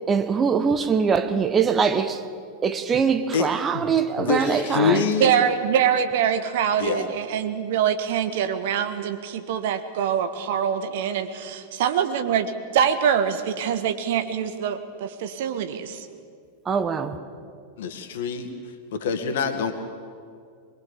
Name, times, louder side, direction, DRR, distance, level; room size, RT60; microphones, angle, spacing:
voice 1, 0.1-2.2 2.6-5.0 16.6-17.2, right 6 dB, 20° right, 1.3 m, -22 dB
voice 2, 3.7-5.3 6.8-7.1 17.8-18.5 18.9-19.7, left 5 dB, 55° left, 2.1 m, -25 dB
voice 3, 5.2-12.4 12.7-16.1, right 8 dB, 55° right, 1.5 m, -24 dB
23.0 x 21.5 x 7.2 m
figure-of-eight pair, 90°, 0 cm